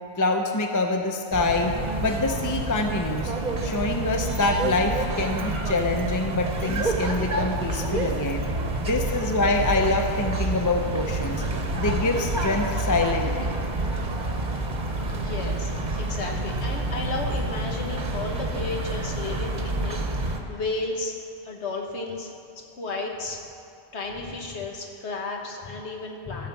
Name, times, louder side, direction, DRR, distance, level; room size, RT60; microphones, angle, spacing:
voice 1, 0.2-1.7 2.0-3.3 3.6-8.4 8.8-11.4 11.8-13.5 26.3-26.5, left 2 dB, 25° left, 3 dB, 0.4 m, -25 dB
sound 1, 1.3-20.4, right 2 dB, 45° right, 1.0 m, -28 dB
voice 2, 15.1-15.7 16.0-21.1 21.4-22.3 22.5-23.4 23.9-26.5, left 3 dB, 80° left, 1 dB, 1.5 m, -33 dB
14.0 x 5.0 x 7.1 m, 2.5 s
omnidirectional pair, 1.1 m